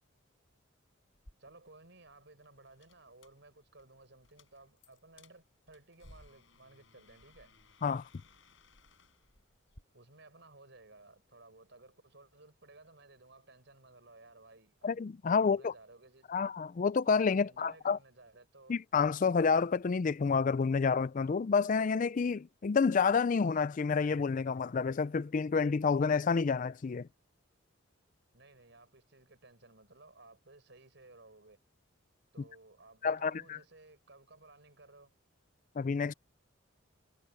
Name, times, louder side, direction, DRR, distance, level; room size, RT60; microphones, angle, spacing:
sound 1, 1.1-9.8, left 2 dB, 65° left, 6.5 m, -62 dB
voice 1, 1.4-7.5 9.9-14.9 15.4-16.5 17.4-18.8 28.3-31.6 32.3-35.1, right 2 dB, 60° right, 6.3 m, -58 dB
voice 2, 14.8-15.7 16.3-18.0 18.7-27.1 33.0-33.6 35.8-36.1, left 5 dB, 40° left, 0.4 m, -29 dB
head